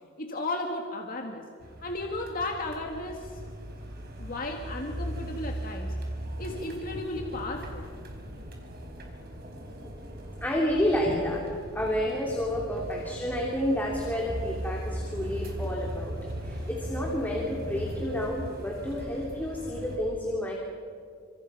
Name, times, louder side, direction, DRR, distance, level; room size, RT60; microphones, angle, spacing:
voice 1, 0.2-1.5 1.8-3.4 4.2-5.9 6.4-7.9, left 2 dB, 45° left, 2 dB, 2.1 m, -34 dB
sound 1, 1.6-20.0, equal, 50° right, 4.4 m, -38 dB
voice 2, 10.4-11.4 11.7-16.2 16.4-20.5, equal, 10° left, -2 dB, 3.1 m, -30 dB
29.0 x 26.5 x 5.7 m, 2.1 s
head